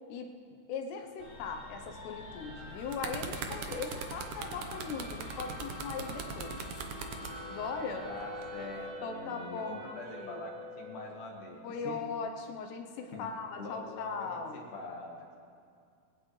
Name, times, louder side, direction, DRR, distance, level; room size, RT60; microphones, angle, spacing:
voice 1, 0.1-6.6 7.5-8.1 8.6-8.7 9.0-10.4 11.6-14.6, left 5 dB, 75° left, 5 dB, 2.8 m, -39 dB
sound 1, 1.2-8.9, left 2 dB, 40° left, 3.6 m, -46 dB
sound 2, 2.6-7.3 8.2-8.4, right 6 dB, 80° right, 1.9 m, -40 dB
Wind instrument woodwind instrument, 7.3-11.6, left 1 dB, 30° right, 3.1 m, -47 dB
voice 2, 8.0-11.6 11.8-12.0 13.1-13.3 13.6-15.3, left 2 dB, 60° left, 0 dB, 2.4 m, -43 dB
20.0 x 18.0 x 3.2 m, 2.3 s
omnidirectional pair, 5.3 m